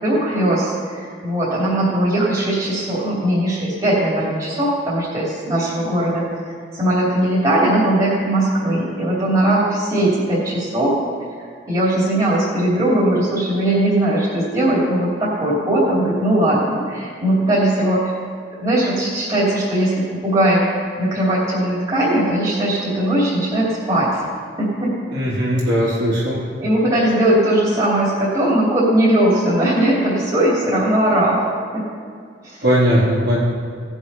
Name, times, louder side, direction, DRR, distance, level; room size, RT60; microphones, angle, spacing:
voice 1, 0.0-6.2 6.7-10.9 11.7-18.1 18.6-24.1 24.6-24.9 26.6-31.5 31.7-31.8 32.4-32.6, right 1 dB, 30° right, -7 dB, 2.8 m, -19 dB
voice 2, 25.1-26.4 32.6-33.4, equal, 75° right, -12 dB, 3.4 m, -18 dB
17.0 x 7.2 x 5.5 m, 2.2 s
head